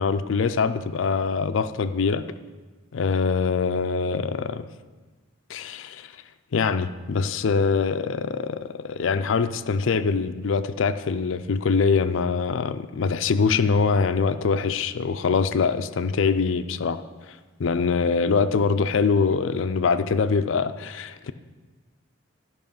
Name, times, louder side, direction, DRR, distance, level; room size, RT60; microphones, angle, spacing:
voice 1, 0.0-2.2 2.9-4.7 5.5-6.1 6.5-17.0 17.3-21.3, left 5 dB, 70° left, 11 dB, 0.4 m, -23 dB
12.5 x 5.5 x 5.4 m, 1.3 s
head